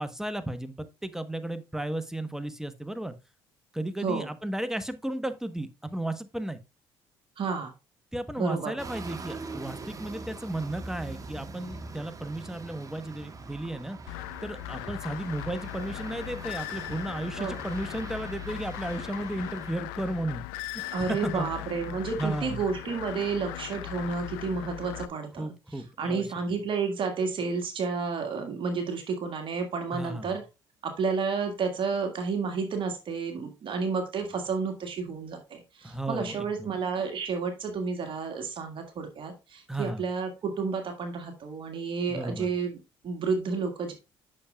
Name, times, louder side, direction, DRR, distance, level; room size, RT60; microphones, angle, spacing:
voice 1, 0.0-3.1 3.7-6.6 8.1-14.0 14.4-21.5 22.2-22.6 25.4-26.3 29.9-30.3 35.8-36.7 39.7-40.0 42.1-42.5, right 1 dB, 5° right, 1.1 m, -34 dB
voice 2, 7.4-7.7 8.4-8.7 17.4-17.6 20.9-25.5 26.0-30.4 30.8-42.8 43.0-43.9, right 5 dB, 50° right, 1.8 m, -31 dB
sound 1, 8.8-19.8, right 3 dB, 30° right, 1.3 m, -43 dB
sound 2, 14.1-25.1, left 18 dB, 90° left, 0.5 m, -39 dB
8.6 x 6.5 x 2.3 m
supercardioid pair, 70°, 11 cm